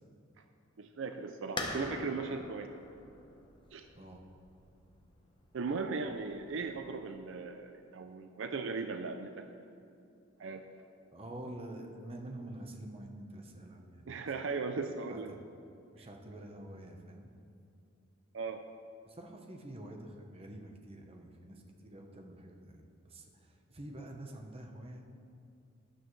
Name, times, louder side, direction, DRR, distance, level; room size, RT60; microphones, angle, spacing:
voice 1, 0.8-2.7 3.7-3.9 5.5-9.5 10.4-10.6 14.1-15.3 16.0-16.1 18.3-18.7, right 4 dB, 65° right, 7 dB, 0.5 m, -38 dB
sound 1, 1.6-7.0, left 2 dB, 25° left, 0.9 m, -44 dB
voice 2, 11.1-14.2 15.1-15.4 15.9-17.3 19.1-25.0, right 1 dB, 30° right, 2 dB, 1.0 m, -47 dB
12.5 x 11.5 x 3.2 m, 2.5 s
head